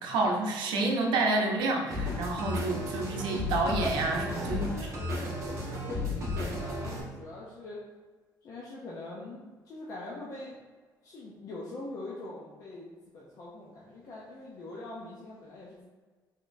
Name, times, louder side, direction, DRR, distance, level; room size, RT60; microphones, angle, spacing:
voice 1, 0.0-4.9, right 2 dB, 80° right, 1 dB, 0.7 m, -29 dB
sound 1, 1.9-7.0, left 2 dB, 40° right, 1.1 m, -34 dB
voice 2, 4.2-7.8 8.4-10.6 11.0-15.9, left 2 dB, 45° left, -5 dB, 0.6 m, -43 dB
3.9 x 3.5 x 2.6 m, 1.4 s
cardioid pair, 170°, 8 cm